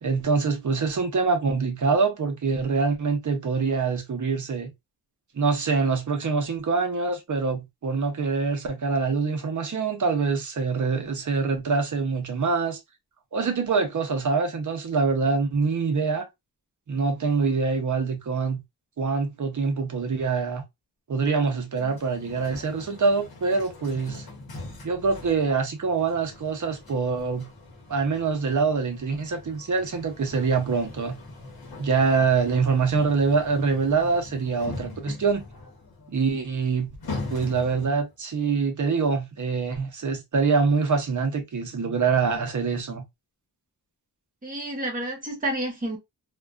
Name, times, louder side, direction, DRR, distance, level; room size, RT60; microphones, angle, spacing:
voice 1, 0.0-4.7 5.3-12.8 13.3-16.3 16.9-18.6 19.0-20.6 21.1-24.3 24.8-27.5 27.9-31.2 31.8-35.4 36.1-36.9 37.3-43.0, right 4 dB, 50° right, 0.7 m, -25 dB
sound 1, 21.7-38.1, left 2 dB, 65° left, 0.8 m, -41 dB
voice 2, 44.4-46.0, right 1 dB, 20° right, 0.9 m, -30 dB
2.3 x 2.2 x 2.4 m
wide cardioid pair, 120°, 40 cm